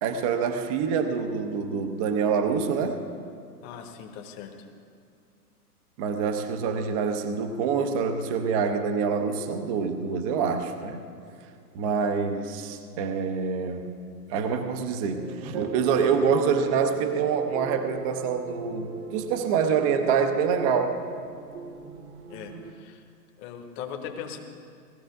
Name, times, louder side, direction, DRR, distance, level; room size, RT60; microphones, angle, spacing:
voice 1, 0.0-3.1 6.0-11.0 11.7-14.0 14.3-21.0, right 6 dB, 20° right, 7 dB, 0.6 m, -26 dB
voice 2, 3.6-4.5 11.8-11.9 22.3-23.0 23.4-24.4, left 8 dB, 25° left, 5 dB, 1.2 m, -39 dB
sound 1, 14.8-22.7, right 7 dB, 45° right, 1.1 m, -39 dB
18.5 x 13.5 x 3.6 m, 2.4 s
figure-of-eight pair, 110°, 49 cm